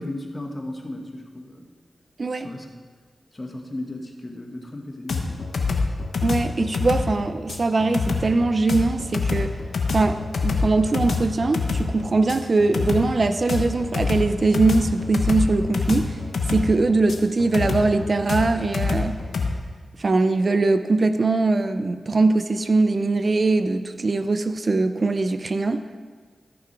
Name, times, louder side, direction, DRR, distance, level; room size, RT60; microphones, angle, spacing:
voice 1, 0.0-1.7 2.4-2.7 3.3-5.6, left 1 dB, 30° left, 2 dB, 1.5 m, -35 dB
sound 1, 5.1-19.5, left 4 dB, 80° left, 1.0 m, -26 dB
voice 2, 6.2-9.5 9.9-16.2 16.5-19.2 20.0-25.8, right 3 dB, 50° right, 10 dB, 0.5 m, -21 dB
13.5 x 6.0 x 4.7 m, 1.5 s
cardioid pair, 50°, 0 cm